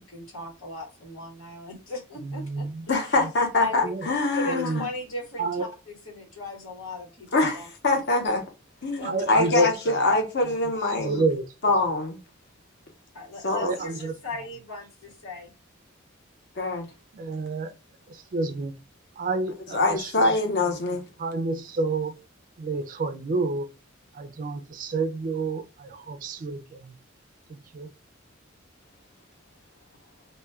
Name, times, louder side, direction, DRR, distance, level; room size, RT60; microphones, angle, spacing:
voice 1, 0.0-2.7 3.0-3.2 3.6-3.9 4.3-7.7 9.0-9.6 13.1-15.5, left 2 dB, 90° left, 1.2 m, -37 dB
voice 2, 2.2-2.8 3.8-4.1 4.4-4.8 5.4-5.7 9.0-9.7 10.5-10.6 11.0-11.4 13.6-14.1 17.1-17.7 18.1-18.7 19.2-20.3 21.2-22.1 22.6-23.7 24.1-26.9 27.5-27.9, right 2 dB, 40° right, 0.3 m, -29 dB
voice 3, 2.9-4.9 7.3-8.4 8.8-11.2 11.6-12.2 13.4-13.7 16.6-16.9 19.7-21.0, left 2 dB, 55° left, 0.7 m, -24 dB
2.2 x 2.2 x 3.3 m
head